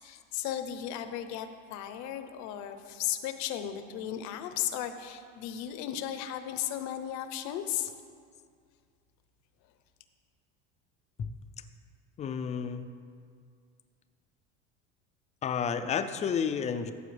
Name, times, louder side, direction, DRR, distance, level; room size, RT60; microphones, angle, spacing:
voice 1, 0.0-7.9, left 11 dB, 65° left, 9 dB, 0.8 m, -35 dB
voice 2, 12.2-12.9 15.4-16.9, left 7 dB, 25° left, 10 dB, 0.4 m, -31 dB
14.5 x 7.6 x 3.3 m, 2.2 s
cardioid pair, 135°, 31 cm